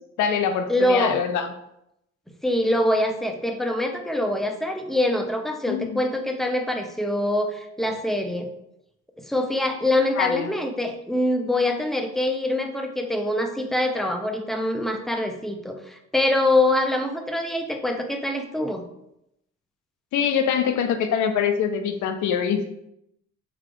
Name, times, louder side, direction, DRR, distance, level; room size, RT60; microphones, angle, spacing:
voice 1, 0.2-1.5 5.7-6.0 10.2-10.5 20.1-22.6, left 7 dB, 75° left, 7 dB, 0.5 m, -24 dB
voice 2, 0.7-1.2 2.4-8.5 9.2-18.8, left 1 dB, ahead, 4 dB, 0.4 m, -24 dB
3.5 x 2.3 x 3.7 m, 0.81 s
cardioid pair, 90°, 30 cm